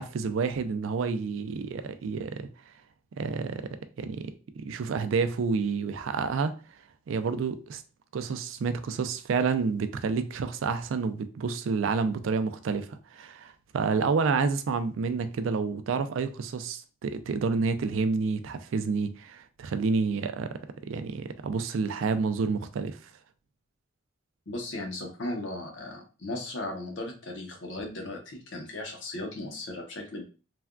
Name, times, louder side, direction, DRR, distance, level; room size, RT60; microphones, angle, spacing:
voice 1, 0.0-2.5 3.2-6.5 7.1-7.8 8.1-20.6 20.9-23.0, right 4 dB, 80° right, 0.4 m, -29 dB
voice 2, 24.5-30.2, left 1 dB, 70° left, 0.8 m, -36 dB
3.3 x 2.3 x 2.2 m
head